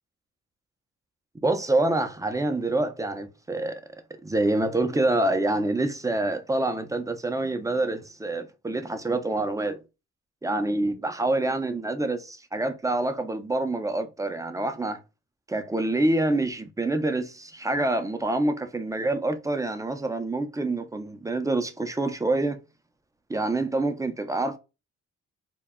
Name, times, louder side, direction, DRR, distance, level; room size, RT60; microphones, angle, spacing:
voice 1, 1.4-3.7 4.2-9.8 10.4-15.0 15.5-22.6 23.3-24.6, right 2 dB, 10° right, 0.3 m, -26 dB
2.1 x 2.1 x 3.4 m
cardioid pair, 90°, 30 cm